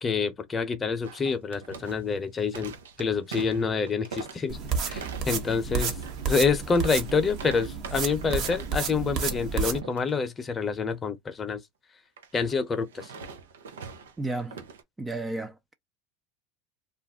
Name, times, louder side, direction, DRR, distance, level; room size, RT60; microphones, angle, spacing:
voice 1, 0.0-4.6 4.9-6.0 6.3-11.6 12.3-13.1, left 5 dB, 25° left, 0.8 m, -27 dB
sound 1, 1.0-8.9 9.1-9.4 9.7-10.1 12.2-14.8, right 5 dB, 85° right, 0.6 m, -43 dB
sound 2, 4.5-9.8, right 5 dB, 50° right, 0.9 m, -31 dB
voice 2, 14.2-14.6 15.0-15.7, right 2 dB, 15° right, 0.4 m, -32 dB
2.4 x 2.2 x 3.6 m
hypercardioid pair, 95°, 0 cm